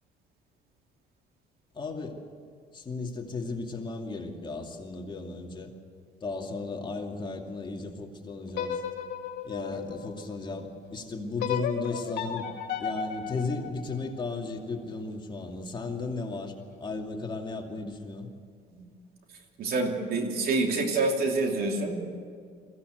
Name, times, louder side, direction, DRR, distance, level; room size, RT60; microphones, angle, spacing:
voice 1, 1.7-2.2 2.7-5.7 6.2-8.8 9.4-12.5 12.8-18.3, left 3 dB, 25° left, 1 dB, 2.5 m, -35 dB
sound 1, 8.5-10.7 11.4-14.5, left 7 dB, 75° left, 2.2 m, -34 dB
voice 2, 19.6-22.0, right 3 dB, 65° right, 3 dB, 3.0 m, -27 dB
22.0 x 16.0 x 7.9 m, 2.1 s
cardioid pair, 110°, 17 cm